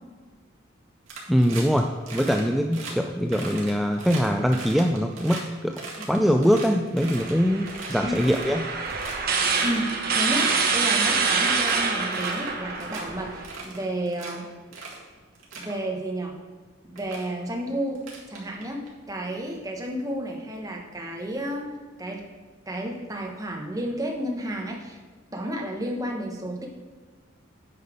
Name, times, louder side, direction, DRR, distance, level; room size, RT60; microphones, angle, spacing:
sound 1, 1.1-1.8 2.1-2.4 2.7-2.9 3.3-5.4 5.7-7.3 7.7-8.6 8.9-9.1 9.4-9.8 10.1-10.5 10.9-11.8 12.1-12.5 12.8-13.0 13.4-14.3 14.7-15.0 15.3-15.7 16.5-16.6 17.0-17.2 17.9-18.9, right 4 dB, 80° right, 2.0 m, -39 dB
voice 1, 1.3-5.8 6.1-8.6, equal, ahead, 3 dB, 0.3 m, -23 dB
sound 2, 7.0-13.5, right 4 dB, 50° right, 1.0 m, -26 dB
voice 2, 9.6-14.5 15.5-16.4 16.8-22.2 22.7-25.0 25.3-26.7, right 1 dB, 15° right, 0 dB, 1.1 m, -31 dB
9.3 x 5.6 x 5.1 m, 1.4 s
head